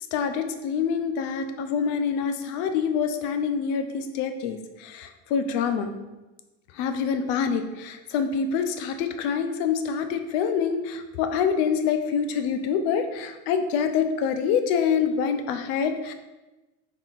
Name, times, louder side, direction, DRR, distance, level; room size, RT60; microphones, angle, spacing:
voice 1, 0.1-5.9 6.7-16.1, left 6 dB, 70° left, 8 dB, 0.5 m, -26 dB
3.7 x 2.4 x 4.0 m, 1.1 s
cardioid pair, 135°, 35 cm